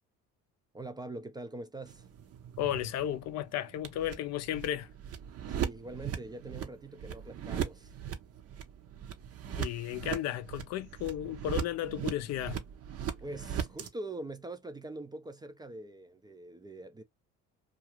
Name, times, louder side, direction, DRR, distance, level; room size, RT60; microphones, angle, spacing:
voice 1, 0.7-2.1 5.5-7.9 13.2-17.0, right 2 dB, 15° right, 0.4 m, -43 dB
sound 1, 1.9-13.9, right 9 dB, 45° right, 0.7 m, -39 dB
voice 2, 2.6-4.9 9.6-12.6, left 12 dB, 55° left, 0.4 m, -34 dB
2.4 x 2.3 x 2.9 m
supercardioid pair, 95°, 33 cm